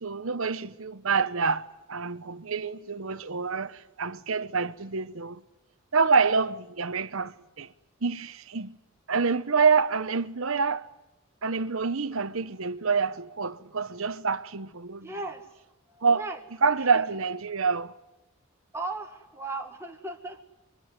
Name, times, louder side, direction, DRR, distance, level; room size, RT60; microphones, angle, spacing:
voice 1, 0.0-5.4 5.9-7.7 8.0-8.8 9.1-10.9 11.4-15.1 16.0-16.2 16.6-17.9, right 5 dB, 70° right, 1.0 m, -27 dB
voice 2, 15.0-15.5 15.9-16.4 16.7-17.0 18.7-20.4, right 2 dB, 10° right, 1.9 m, -37 dB
24.5 x 23.0 x 9.5 m
head